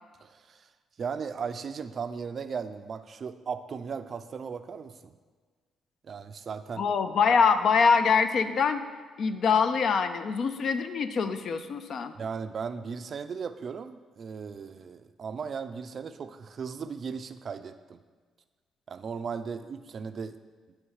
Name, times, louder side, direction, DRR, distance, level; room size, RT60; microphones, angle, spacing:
voice 1, 0.2-0.7 1.0-5.2 6.0-6.8 12.2-18.0 18.9-20.4, right 6 dB, 50° right, 10 dB, 0.3 m, -37 dB
voice 2, 6.8-8.8 9.2-12.1, left 5 dB, 60° left, 10 dB, 0.4 m, -24 dB
9.5 x 3.2 x 4.7 m, 1.5 s
cardioid pair, 90°, 0 cm